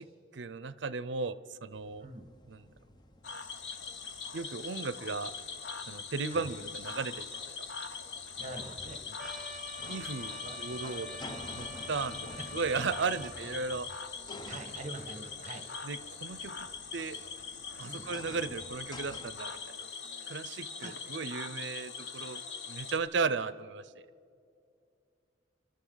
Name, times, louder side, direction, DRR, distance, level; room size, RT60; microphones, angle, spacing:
voice 1, 0.3-2.1 2.5-2.7 4.3-5.3 5.9-7.7 9.9-11.1 11.5-13.9 15.8-16.7 16.9-17.2 17.8-19.7 20.3-24.1, right 4 dB, 70° right, 16 dB, 0.6 m, -36 dB
sound 1, 1.7-19.3, left 1 dB, 25° left, 0.7 m, -52 dB
Cricket / Frog, 3.2-23.0, left 5 dB, 65° left, 1.0 m, -42 dB
voice 2, 8.4-9.0 10.4-10.8 12.4-12.6 14.3-15.7 17.9-18.1 20.8-20.9, right 2 dB, 40° right, 6 dB, 1.5 m, -44 dB
Trumpet, 9.2-13.4, equal, 5° right, 1.1 m, -46 dB
27.5 x 13.0 x 4.0 m, 2.4 s
head